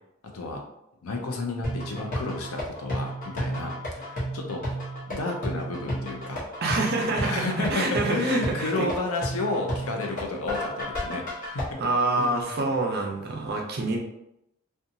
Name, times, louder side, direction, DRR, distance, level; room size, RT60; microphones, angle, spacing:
voice 1, 1.0-4.6 5.1-6.4 7.2-11.8 12.2-12.4, left 3 dB, 80° left, 2 dB, 0.6 m, -31 dB
sound 1, 1.6-11.6, equal, 40° left, 0.8 m, -33 dB
voice 2, 6.6-8.9 11.8-14.0, right 2 dB, 45° right, 1 dB, 0.5 m, -26 dB
2.8 x 2.3 x 2.6 m, 0.82 s
head